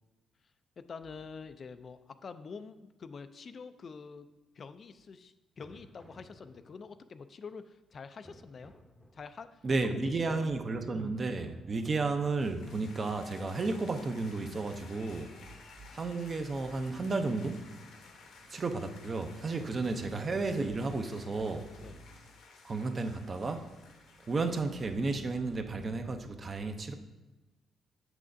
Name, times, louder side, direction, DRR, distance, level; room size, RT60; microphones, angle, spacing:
voice 1, 0.8-4.3 4.5-8.7 9.1-10.5 19.5-19.7 21.8-22.0, left 5 dB, 45° left, 11 dB, 0.3 m, -47 dB
sound 1, 5.6-7.0 8.2-9.5 11.0-14.1 14.6-16.0 17.0-18.4 19.6-21.0 21.8-22.0, equal, 5° left, 0.7 m, -56 dB
voice 2, 9.6-15.4 15.9-17.6 18.5-21.7 22.6-23.8 24.3-26.9, right 3 dB, 35° right, 7 dB, 0.5 m, -33 dB
sound 2, 12.4-25.6, left 4 dB, 80° left, 1.0 m, -55 dB
6.6 x 6.1 x 2.6 m, 1.1 s
cardioid pair, 90°, 0 cm